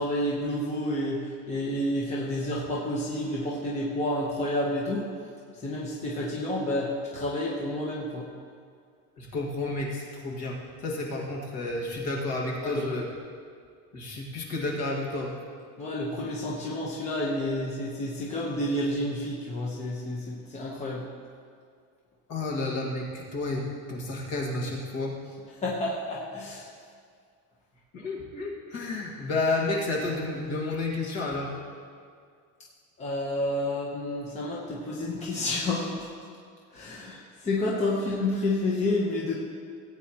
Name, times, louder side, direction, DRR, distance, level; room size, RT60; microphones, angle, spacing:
voice 1, 0.0-5.1 5.6-8.3 12.6-12.8 15.8-21.1 25.6-26.7 33.0-36.1 36.7-39.3, left 1 dB, 20° left, -5 dB, 1.1 m, -30 dB
voice 2, 9.2-10.6 10.8-13.1 13.9-15.3 22.3-25.1 27.9-31.5, left 2 dB, 50° left, -3 dB, 2.0 m, -31 dB
17.0 x 9.0 x 3.0 m, 2.2 s
cardioid pair, 180°, 34 cm